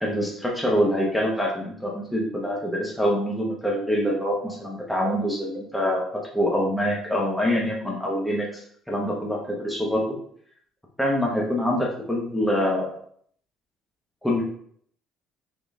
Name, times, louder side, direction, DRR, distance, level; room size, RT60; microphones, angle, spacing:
voice 1, 0.0-10.0 11.0-12.9 14.2-14.4, equal, 5° left, -3 dB, 0.8 m, -25 dB
3.8 x 3.7 x 3.5 m, 0.63 s
cardioid pair, 130°, 0 cm